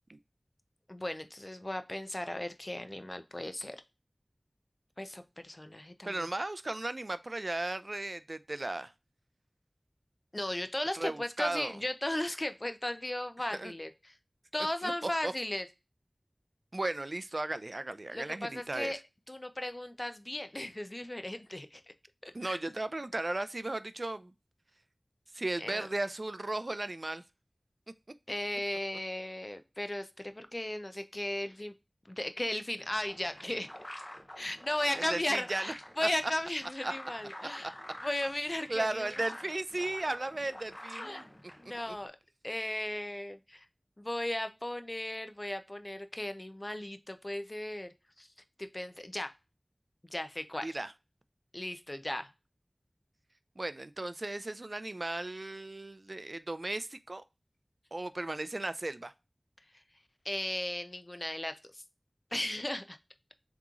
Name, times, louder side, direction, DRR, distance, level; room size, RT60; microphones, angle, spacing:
voice 1, 0.9-3.8 5.0-6.3 10.3-14.2 14.5-15.7 18.1-19.0 19.3-21.8 22.2-22.6 25.6-25.9 28.3-31.7 32.1-33.7 34.4-37.7 38.0-39.1 41.0-41.2 41.6-42.1 42.4-43.7 44.0-47.9 48.2-48.3 48.6-49.3 50.1-50.8 51.5-52.3 60.2-61.8 62.3-63.0, left 1 dB, 35° left, 0.5 m, -36 dB
voice 2, 6.1-8.9 11.0-11.8 13.6-13.7 14.8-15.3 16.7-18.9 22.3-24.3 25.3-27.2 35.0-35.7 36.0-36.1 36.8-36.9 37.6-37.7 38.7-41.2 41.9-42.0 50.6-50.9 53.6-57.2 57.9-59.1, right 2 dB, 60° right, 0.3 m, -35 dB
sound 1, 32.8-42.1, equal, 20° left, 0.8 m, -48 dB
3.6 x 3.0 x 3.6 m
wide cardioid pair, 45°, 0 cm